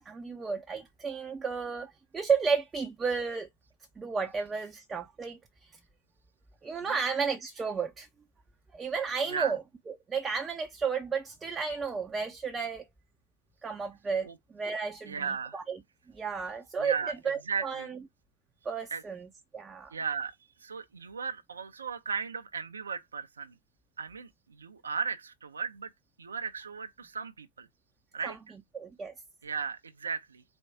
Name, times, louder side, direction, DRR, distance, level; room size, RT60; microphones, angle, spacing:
voice 1, 0.0-3.5 4.0-5.8 6.6-8.1 8.7-9.6 9.9-12.9 13.6-15.8 16.1-18.0 18.6-19.9 28.2-28.4 28.7-29.1, right 5 dB, 15° right, 0.5 m, -33 dB
voice 2, 15.1-15.6 16.8-17.1 17.5-17.9 18.9-19.0 19.9-20.3 20.6-23.5 24.0-25.9 26.2-27.7 28.1-28.4 29.4-30.4, right 5 dB, 70° right, 0.5 m, -36 dB
4.3 x 2.2 x 4.7 m
figure-of-eight pair, 90°, 0 cm